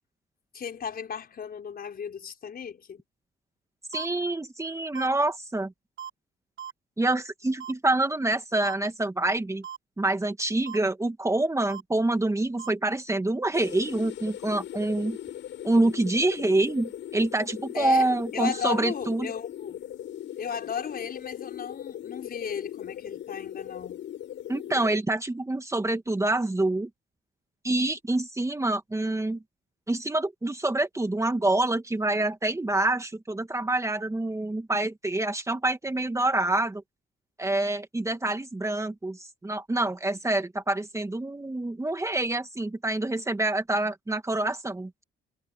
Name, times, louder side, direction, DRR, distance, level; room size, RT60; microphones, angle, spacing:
voice 1, 0.5-3.0 17.7-19.8 20.4-24.1, left 7 dB, 50° left, 5.0 m, -35 dB
voice 2, 3.9-5.7 7.0-9.6 10.0-15.2 15.6-19.3 24.5-26.9 27.6-29.4 29.9-36.8 37.4-44.9, right 2 dB, 15° right, 2.1 m, -26 dB
sound 1, 3.9-4.1 5.0-5.1 6.0-6.1 6.6-6.7 7.6-7.7 8.6-8.7 9.6-9.8 10.7-10.8 11.7-11.8 12.6-12.7, right 9 dB, 75° right, 3.5 m, -38 dB
sound 2, 13.5-25.0, left 11 dB, 75° left, 6.2 m, -39 dB
cardioid pair, 90°, 20 cm